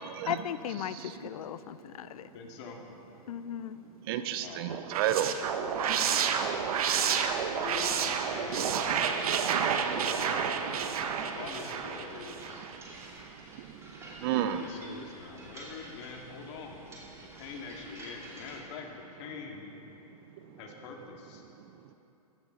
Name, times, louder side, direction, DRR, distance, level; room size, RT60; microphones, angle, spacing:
voice 1, 0.3-2.3 3.3-3.8, left 10 dB, 65° left, 14 dB, 0.6 m, -36 dB
voice 2, 2.3-2.8 4.4-4.7 6.3-6.7 7.6-8.8 9.9-10.3 11.2-12.7 14.4-16.8 17.4-19.6 20.6-21.4, left 5 dB, 45° left, 1 dB, 2.1 m, -44 dB
voice 3, 4.1-5.3 5.9-6.5 6.9-7.0 13.6-14.6, right 11 dB, 40° right, 10 dB, 0.6 m, -32 dB
sound 1, 4.7-12.8, right 7 dB, 65° right, 1.1 m, -30 dB
sound 2, 5.7-18.6, right 2 dB, 15° right, 2.4 m, -50 dB
15.0 x 10.5 x 5.7 m, 2.9 s
hypercardioid pair, 140°, 20 cm